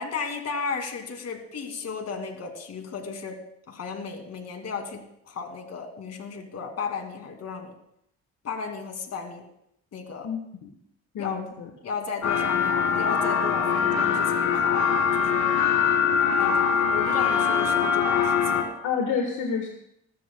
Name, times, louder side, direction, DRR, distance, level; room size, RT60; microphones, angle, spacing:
voice 1, 0.0-3.4 3.7-7.7 8.4-9.5 9.9-10.3 11.2-11.4 11.8-15.5 16.4-18.7, left 5 dB, 55° left, 4 dB, 2.5 m, -34 dB
voice 2, 10.2-10.7 11.1-11.7 18.8-19.7, left 6 dB, 75° left, 3 dB, 1.4 m, -29 dB
sound 1, 12.2-18.6, left 7 dB, 90° left, 2.3 m, -23 dB
22.0 x 13.0 x 2.3 m, 0.75 s
cardioid pair, 90°, 30 cm